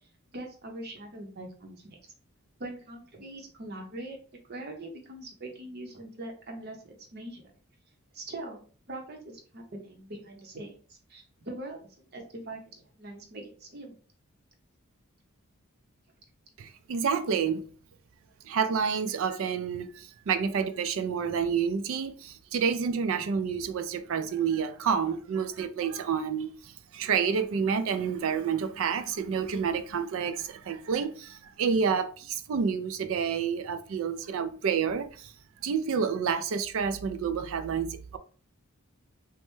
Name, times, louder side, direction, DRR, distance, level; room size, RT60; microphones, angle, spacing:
voice 1, 0.3-2.1 2.6-4.2 4.5-7.5 8.1-8.6 8.9-11.8 12.1-13.9, right 1 dB, 45° right, 0.7 m, -42 dB
voice 2, 16.6-17.6 18.4-35.3 35.6-38.2, right 6 dB, 65° right, 0.3 m, -29 dB
3.2 x 2.1 x 3.0 m
head